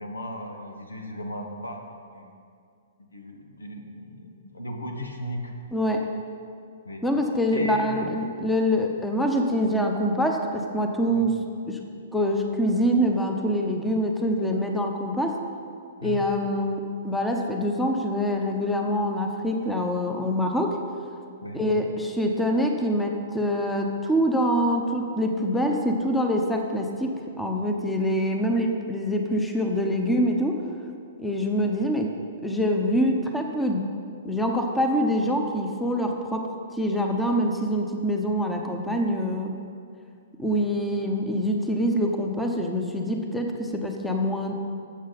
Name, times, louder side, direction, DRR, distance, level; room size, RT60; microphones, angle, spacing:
voice 1, 0.0-2.3 3.0-5.5 6.8-7.0 7.5-8.1 11.1-11.3 16.0-16.2 21.4-21.7, left 1 dB, 90° left, 3 dB, 1.3 m, -36 dB
voice 2, 5.7-6.1 7.0-11.8 12.1-15.4 16.0-20.8 21.5-30.6 31.2-32.1 32.4-33.9 34.2-39.5 40.4-44.5, equal, 5° left, 2 dB, 1.0 m, -25 dB
13.0 x 8.0 x 4.2 m, 2.3 s
hypercardioid pair, 120°, 0 cm